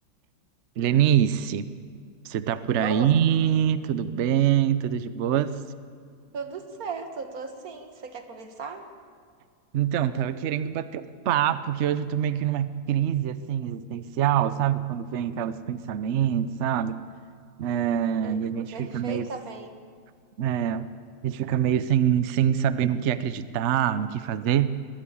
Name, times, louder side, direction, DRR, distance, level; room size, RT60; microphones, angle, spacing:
voice 1, 0.8-1.7 2.2-5.5 9.7-17.0 17.6-19.2 20.4-20.9 21.2-24.7, right 10 dB, 70° right, 14 dB, 0.6 m, -25 dB
voice 2, 6.3-8.8 13.6-13.7 18.2-18.4 18.7-19.7, right 5 dB, 50° right, 7 dB, 1.9 m, -36 dB
21.0 x 15.0 x 8.5 m, 2.2 s
omnidirectional pair, 2.0 m